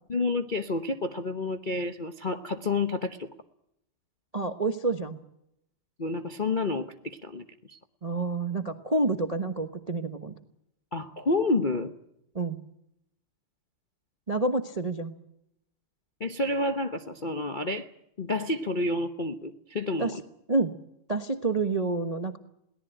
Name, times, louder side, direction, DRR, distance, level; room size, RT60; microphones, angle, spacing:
voice 1, 0.1-3.3 6.0-7.8 10.9-11.9 16.2-17.9 18.2-20.2, left 2 dB, 45° left, 6 dB, 0.6 m, -29 dB
voice 2, 4.3-5.2 8.0-10.3 12.3-12.6 14.3-15.1 20.0-20.2 20.5-20.8 21.1-22.4, right 3 dB, 30° right, 9 dB, 0.6 m, -28 dB
22.5 x 18.0 x 9.0 m, 0.80 s
omnidirectional pair, 2.4 m